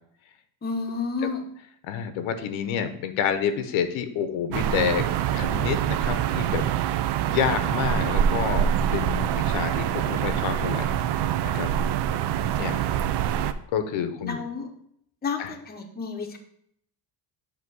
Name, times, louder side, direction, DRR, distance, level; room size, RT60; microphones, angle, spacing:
voice 1, 0.6-1.4 12.1-12.7 14.2-14.7 15.2-16.4, left 4 dB, 20° left, 3 dB, 0.8 m, -31 dB
voice 2, 1.8-5.0 5.3-6.7 7.3-11.0 11.4-11.7 12.6-12.8 13.7-14.4 15.4-15.5, left 8 dB, 85° left, 9 dB, 0.9 m, -28 dB
sound 1, 4.5-13.5, right 10 dB, 60° right, 0.5 m, -25 dB
8.1 x 3.0 x 6.1 m, 0.70 s
cardioid pair, 155°, 46 cm